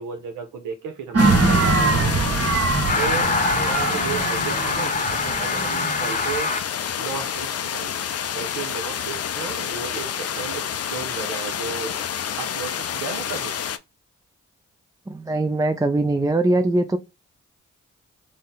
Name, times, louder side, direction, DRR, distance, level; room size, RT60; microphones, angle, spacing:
voice 1, 0.0-2.4 2.9-6.5 7.0-8.0 8.3-12.0 12.4-13.6, right 6 dB, 80° right, 0.7 m, -34 dB
sound 1, 1.1-6.4, right 3 dB, 50° right, 1.3 m, -22 dB
sound 2, 1.2-13.8, left 8 dB, 50° left, 0.5 m, -29 dB
sound 3, 2.9-6.6, left 3 dB, 25° left, 0.8 m, -25 dB
voice 2, 15.1-17.0, right 2 dB, 10° right, 0.4 m, -21 dB
3.8 x 2.0 x 3.9 m
supercardioid pair, 40°, 31 cm